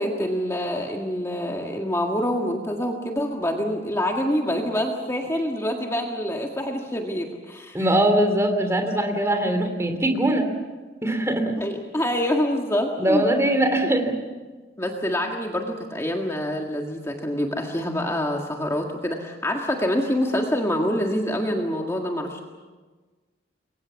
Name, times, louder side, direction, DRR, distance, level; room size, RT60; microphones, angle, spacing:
voice 1, 0.0-7.8 11.6-13.2 14.8-22.4, equal, 15° left, 1 dB, 1.8 m, -26 dB
voice 2, 7.7-10.5 11.0-11.6 13.0-14.2, right 1 dB, 15° right, 5 dB, 3.0 m, -21 dB
28.0 x 23.0 x 7.1 m, 1.3 s
head